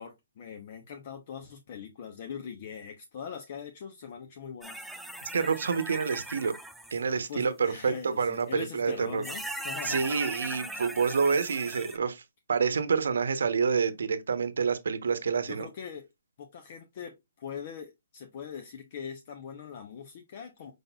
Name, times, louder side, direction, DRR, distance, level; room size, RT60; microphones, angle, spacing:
voice 1, 0.0-4.9 7.3-10.0 15.5-16.1 16.4-20.7, left 7 dB, 45° left, 0.8 m, -42 dB
sound 1, 4.6-7.0 8.4-8.5 9.2-12.0, right 1 dB, ahead, 0.4 m, -39 dB
voice 2, 5.3-6.5 6.9-9.2 9.8-12.2 12.5-15.7, right 5 dB, 75° right, 0.8 m, -28 dB
5.2 x 3.9 x 2.3 m
hypercardioid pair, 155°, 0 cm